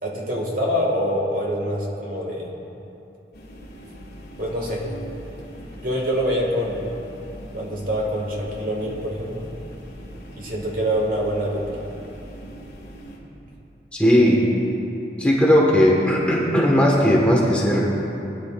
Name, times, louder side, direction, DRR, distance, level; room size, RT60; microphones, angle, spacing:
voice 1, 0.0-2.5 4.4-4.9 5.8-6.9 7.5-9.5 10.3-11.8, equal, 50° right, -2 dB, 1.7 m, -25 dB
sound 1, 3.3-13.2, equal, 60° left, 1.9 m, -41 dB
voice 2, 13.9-14.4 15.2-17.9, equal, 5° left, -4 dB, 1.3 m, -17 dB
20.5 x 9.7 x 2.4 m, 2.9 s
head